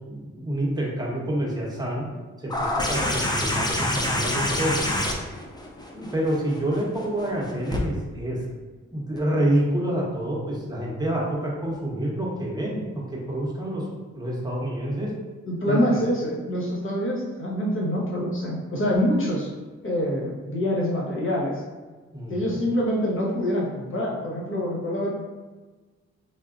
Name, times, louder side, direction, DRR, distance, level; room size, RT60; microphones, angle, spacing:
voice 1, 0.1-2.1 2.4-4.8 5.9-8.6 8.9-13.9 14.1-15.1 15.6-15.8 22.1-22.6, right 1 dB, 15° right, -4 dB, 1.1 m, -28 dB
sound 1, 2.5-7.8 9.2-9.3, left 1 dB, 15° left, 0.6 m, -27 dB
voice 2, 15.5-19.5 19.8-21.6 22.3-25.1, equal, 40° left, -3 dB, 1.2 m, -25 dB
3.6 x 2.6 x 2.5 m, 1.3 s
cardioid pair, 55°, 30 cm